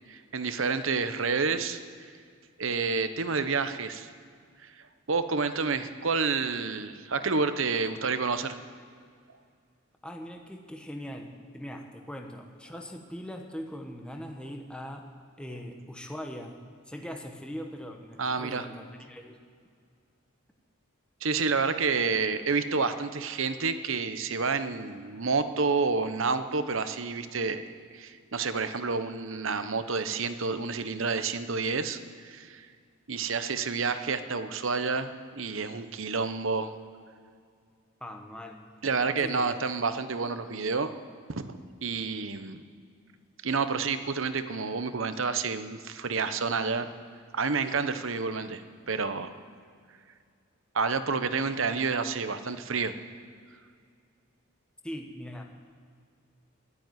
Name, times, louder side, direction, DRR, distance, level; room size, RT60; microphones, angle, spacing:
voice 1, 0.1-1.8 2.6-4.1 4.6-4.7 5.1-8.6 18.2-18.7 21.2-27.6 27.9-32.7 33.1-36.7 38.8-40.9 41.3-41.5 41.8-42.6 43.4-46.9 47.3-49.3 50.7-52.9, right 4 dB, 65° right, 10 dB, 0.9 m, -29 dB
voice 2, 10.0-15.1 15.4-16.6 16.9-19.4 38.0-38.6 39.0-39.6 54.8-55.4, equal, 5° left, 3 dB, 1.0 m, -41 dB
12.5 x 12.5 x 9.2 m, 2.2 s
head